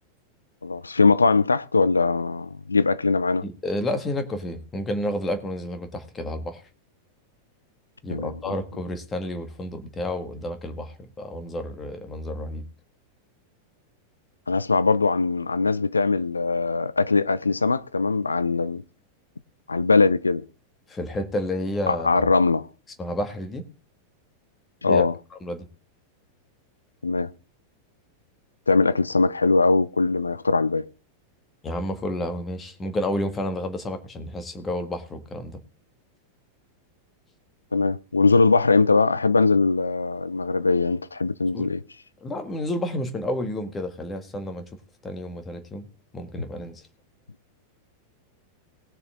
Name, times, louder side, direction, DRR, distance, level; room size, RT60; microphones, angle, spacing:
voice 1, 0.6-3.4 8.1-8.5 14.5-18.8 19.7-20.4 21.9-22.6 24.8-25.1 27.0-27.3 28.7-30.9 37.7-41.8, left 3 dB, 80° left, 0.5 m, -21 dB
voice 2, 3.4-6.6 8.0-12.6 20.9-22.3 23.0-23.6 24.8-25.1 25.4-25.7 31.6-35.6 41.5-41.7 42.2-44.6 45.0-45.9 46.1-46.8, left 1 dB, 20° left, 1.9 m, -30 dB
19.0 x 6.7 x 3.8 m
figure-of-eight pair, 90°, 0 cm